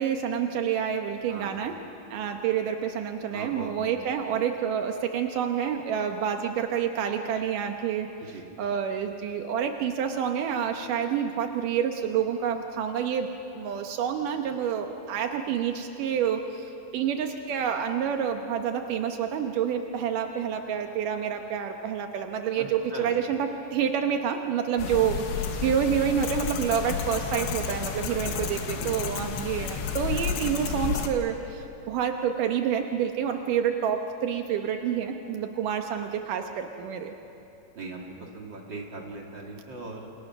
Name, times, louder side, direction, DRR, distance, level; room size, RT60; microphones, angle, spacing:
voice 1, 0.0-1.7 2.1-37.1, right 8 dB, 90° right, 5 dB, 1.8 m, -28 dB
voice 2, 1.3-1.6 3.3-3.7 8.2-8.4 22.6-22.7 22.9-23.1 28.1-28.5 28.7-29.3 29.6-29.7 37.7-40.1, right 3 dB, 30° right, -1 dB, 2.3 m, -40 dB
sound 1, 24.8-31.1, left 7 dB, 85° left, 4.0 m, -31 dB
28.5 x 28.5 x 6.1 m, 2.9 s
omnidirectional pair, 5.4 m